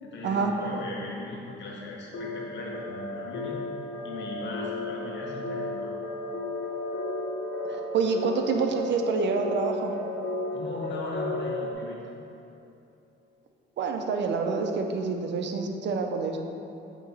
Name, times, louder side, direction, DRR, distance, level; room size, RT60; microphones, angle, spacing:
voice 1, 0.0-3.6 4.0-5.9 10.5-12.0, left 2 dB, 65° left, -3 dB, 1.2 m, -37 dB
sound 1, 2.1-11.7, left 2 dB, 85° left, 0.9 m, -34 dB
voice 2, 7.7-9.9 13.8-16.4, right 4 dB, 65° right, 4 dB, 0.6 m, -27 dB
8.2 x 3.0 x 4.0 m, 2.9 s
cardioid pair, 90°, 20 cm